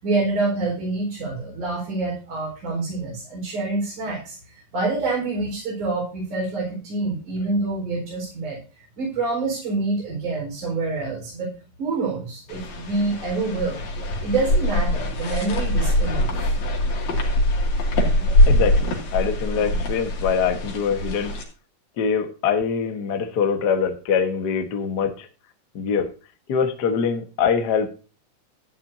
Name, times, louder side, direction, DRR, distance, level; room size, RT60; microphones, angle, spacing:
voice 1, 0.0-4.4 4.7-8.6 9.0-11.5 11.8-13.8 14.2-16.5, right 3 dB, 70° right, -4 dB, 6.0 m, -26 dB
sound 1, 12.5-21.4, left 1 dB, 60° left, 3.7 m, -22 dB
voice 2, 18.5-21.3 22.0-25.3 25.7-26.1 26.5-27.9, left 6 dB, 45° left, 7 dB, 1.3 m, -23 dB
13.5 x 10.5 x 2.7 m, 0.35 s
omnidirectional pair, 3.7 m